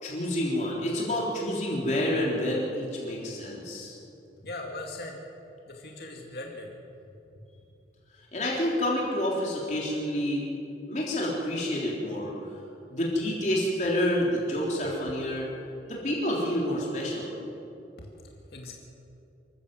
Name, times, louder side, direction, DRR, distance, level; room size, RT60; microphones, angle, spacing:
voice 1, 0.0-4.0 8.3-10.5 10.9-12.3 12.9-15.5 15.9-17.4, left 1 dB, 40° left, -4 dB, 3.7 m, -28 dB
voice 2, 4.4-5.2 5.7-6.7 18.0-18.1 18.5-18.7, left 2 dB, 60° left, 0 dB, 2.3 m, -39 dB
26.5 x 14.5 x 7.8 m, 2.8 s
head